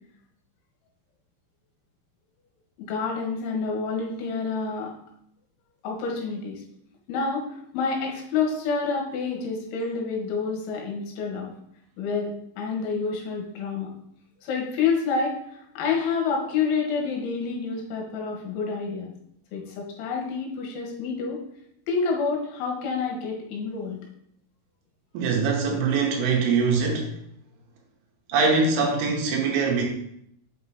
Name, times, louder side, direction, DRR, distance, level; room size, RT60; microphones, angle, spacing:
voice 1, 2.8-4.9 5.8-6.6 7.1-11.5 12.0-13.9 14.4-15.4 15.8-19.1 19.5-21.4 21.9-24.0, left 5 dB, 80° left, 0 dB, 3.5 m, -28 dB
voice 2, 25.1-27.1 28.3-29.9, right 4 dB, 80° right, 0 dB, 3.4 m, -23 dB
8.0 x 5.6 x 2.8 m, 0.72 s
omnidirectional pair, 5.6 m